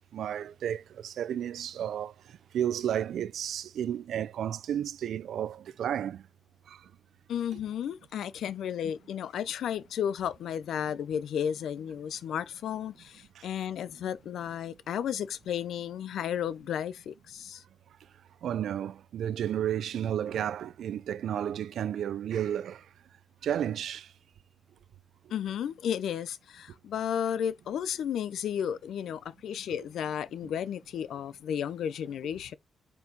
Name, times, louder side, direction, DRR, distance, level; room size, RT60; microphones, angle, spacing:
voice 1, 0.1-2.1 2.5-6.2 6.7-6.8 13.4-13.5 18.4-22.8 23.4-24.1, right 10 dB, 80° right, 0.5 m, -32 dB
voice 2, 7.3-17.6 25.3-32.5, left 9 dB, 85° left, 0.5 m, -33 dB
6.5 x 4.6 x 5.3 m
wide cardioid pair, 145°, 0 cm